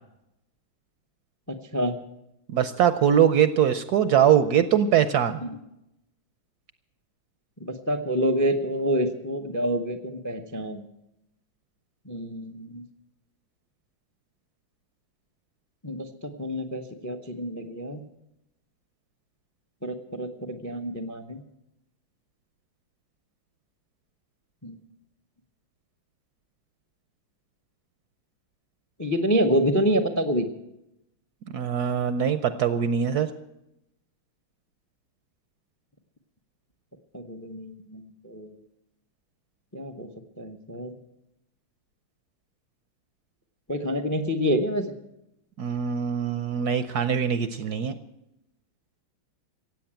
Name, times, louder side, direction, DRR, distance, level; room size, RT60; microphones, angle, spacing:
voice 1, 2.5-5.4 31.5-33.3 45.6-47.9, right 9 dB, 65° right, 12 dB, 1.0 m, -22 dB
voice 2, 7.6-10.8 12.1-12.8 15.8-18.0 19.8-21.4 24.6-24.8 29.0-30.5 37.1-38.6 39.7-40.1 40.4-41.0 43.7-44.9, equal, 30° left, 8 dB, 0.3 m, -27 dB
16.0 x 8.4 x 8.9 m, 0.87 s
omnidirectional pair, 2.2 m